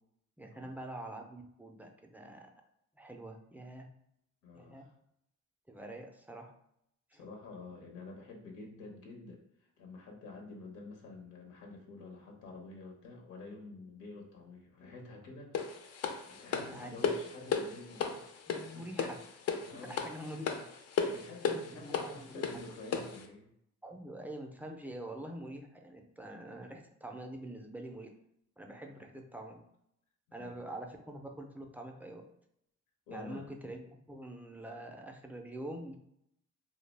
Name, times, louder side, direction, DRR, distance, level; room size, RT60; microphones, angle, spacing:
voice 1, 0.4-2.5 2.9-3.9 4.5-4.9 5.7-6.5 7.1-7.2 16.5-17.0 18.5-19.2 19.9-20.7 20.9-22.5 23.8-28.1 28.6-29.6 30.3-32.2 33.1-35.9, right 1 dB, 5° right, 2 dB, 0.3 m, -45 dB
voice 2, 4.4-4.9 7.1-15.6 16.3-18.2 18.6-18.8 19.7-20.0 21.1-23.5 28.9-29.0 30.3-30.8 33.1-33.5, left 3 dB, 80° left, 1 dB, 0.8 m, -49 dB
sound 1, 15.5-23.2, left 6 dB, 55° left, 0.4 m, -35 dB
2.2 x 2.0 x 3.2 m, 0.75 s
cardioid pair, 90°, 30 cm